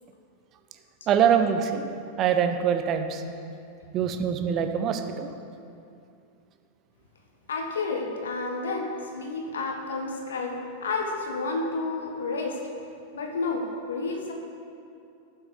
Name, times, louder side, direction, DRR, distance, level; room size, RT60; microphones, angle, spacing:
voice 1, 1.1-1.9 2.2-3.2 3.9-5.3, right 8 dB, 35° right, 7 dB, 0.9 m, -24 dB
voice 2, 7.5-12.7 13.1-14.3, left 3 dB, 65° left, 2 dB, 1.2 m, -30 dB
14.0 x 7.4 x 5.1 m, 2.6 s
figure-of-eight pair, 90°, 0 cm